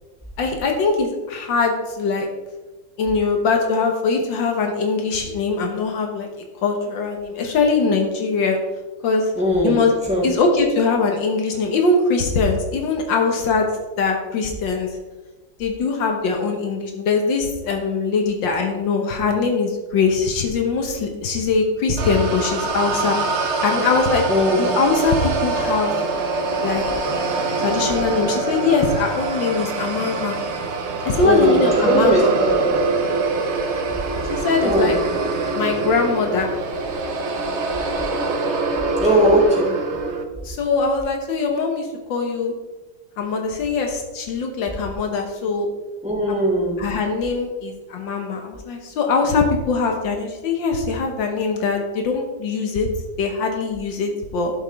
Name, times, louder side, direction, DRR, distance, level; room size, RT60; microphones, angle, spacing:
voice 1, 0.4-2.3 3.0-6.3 6.6-8.6 9.0-9.3 9.6-9.9 10.2-13.7 14.0-14.9 15.6-24.2 24.5-25.9 26.6-26.8 27.6-30.4 31.0-32.3 34.3-35.0 35.5-36.5 40.4-42.5 43.2-45.7 46.3-46.5 46.8-52.9 53.2-54.5, left 4 dB, 75° left, 3 dB, 1.8 m, -22 dB
voice 2, 9.3-9.8 10.1-10.3 24.3-24.7 31.2-32.6 34.6-35.0 39.0-39.7 46.0-46.8, equal, 5° right, -5 dB, 3.3 m, -19 dB
sound 1, 22.0-40.2, right 3 dB, 45° right, 1.0 m, -24 dB
11.5 x 7.1 x 3.5 m, 1.2 s
omnidirectional pair, 2.0 m